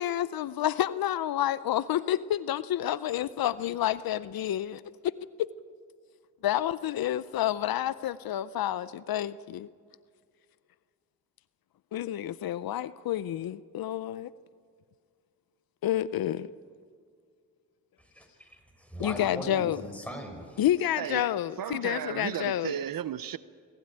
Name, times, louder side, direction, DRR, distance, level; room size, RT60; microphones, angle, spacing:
voice 1, 0.0-5.1 6.4-9.7 11.9-14.3 15.8-16.5 19.0-19.8 20.6-22.8, left 12 dB, 90° left, 0.6 m, -29 dB
voice 2, 18.0-20.6 22.6-22.8, equal, 5° left, 6.4 m, -41 dB
voice 3, 21.6-23.4, right 10 dB, 75° right, 0.7 m, -34 dB
26.0 x 16.0 x 8.9 m
cardioid pair, 55°, 35 cm